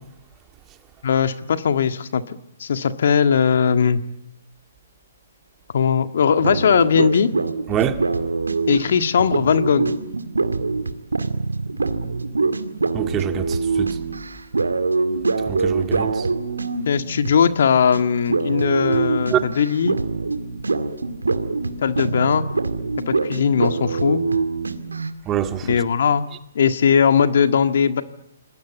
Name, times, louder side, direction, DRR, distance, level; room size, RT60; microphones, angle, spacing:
voice 1, 1.0-4.0 5.7-7.3 8.7-9.9 16.8-20.0 21.8-22.5 23.1-24.2 25.6-26.3 26.5-28.0, left 7 dB, 60° left, 1.7 m, -19 dB
sound 1, 6.3-17.6 17.9-18.0 18.3-25.1, right 3 dB, 85° right, 2.1 m, -24 dB
voice 2, 7.7-8.0 12.9-14.0 15.5-16.2 19.3-19.4 25.3-25.7, right 10 dB, 20° right, 1.9 m, -24 dB
27.0 x 21.0 x 8.3 m
hypercardioid pair, 135°, 0 cm